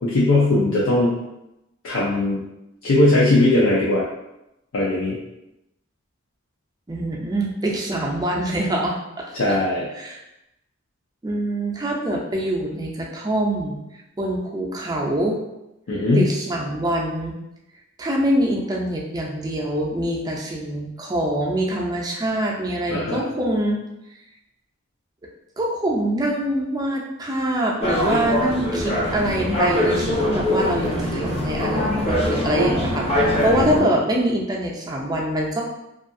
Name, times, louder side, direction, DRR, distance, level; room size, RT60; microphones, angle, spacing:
voice 1, 0.0-1.1 1.8-2.4 2.8-4.0 4.7-5.2 9.3-9.9 15.9-16.3 22.9-23.2, left 2 dB, 85° left, -6 dB, 0.5 m, -19 dB
voice 2, 6.9-9.0 9.3-9.6 10.0-10.2 11.2-13.8 14.2-15.4 16.1-17.3 18.0-23.8 25.6-35.6, right 1 dB, 20° right, -2 dB, 0.4 m, -24 dB
sound 1, 27.8-33.8, left 1 dB, 30° left, 0.6 m, -22 dB
2.7 x 2.4 x 2.5 m, 0.89 s
head